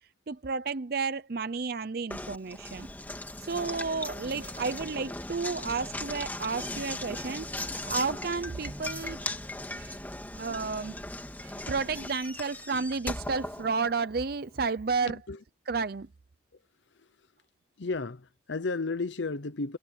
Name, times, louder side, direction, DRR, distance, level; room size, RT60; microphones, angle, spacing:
voice 1, 0.3-2.9 3.4-9.2 9.7-10.0 10.4-11.0 11.4-15.2 15.7-16.1, right 4 dB, 50° right, 0.6 m, -32 dB
Knock, 2.1-14.2, left 1 dB, 10° left, 2.1 m, -38 dB
voice 2, 15.1-15.4 17.8-19.8, left 3 dB, 75° left, 0.8 m, -33 dB
head